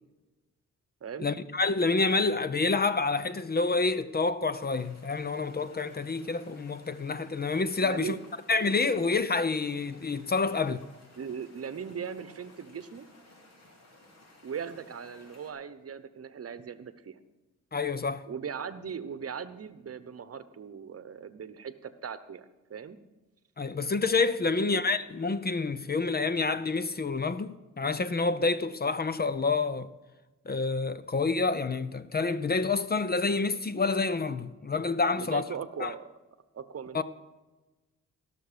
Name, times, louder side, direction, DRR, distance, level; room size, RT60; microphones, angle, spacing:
voice 1, 1.2-8.1 8.5-10.8 17.7-18.3 23.6-29.9 30.5-35.4 35.8-35.9 36.9-37.0, left 4 dB, 30° left, 0.7 m, -28 dB
sound 1, 4.5-15.5, left 2 dB, 55° left, 3.2 m, -57 dB
voice 2, 7.8-8.2 11.2-13.1 14.4-17.2 18.3-23.0 24.5-24.8 35.1-36.1 36.5-37.0, right 7 dB, 50° right, 1.0 m, -39 dB
17.5 x 6.7 x 5.1 m
cardioid pair, 65°, 31 cm